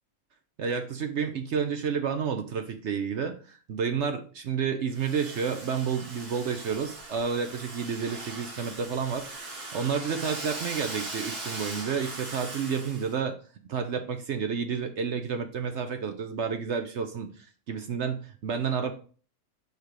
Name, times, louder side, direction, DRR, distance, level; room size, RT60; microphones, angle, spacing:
voice 1, 0.6-9.3 9.7-13.4 13.7-17.3 17.7-18.9, right 6 dB, 60° right, 7 dB, 0.8 m, -30 dB
Domestic sounds home sounds, 4.9-13.1, right 2 dB, 85° right, 2.2 m, -40 dB
4.9 x 4.8 x 4.6 m, 0.41 s
omnidirectional pair, 1.6 m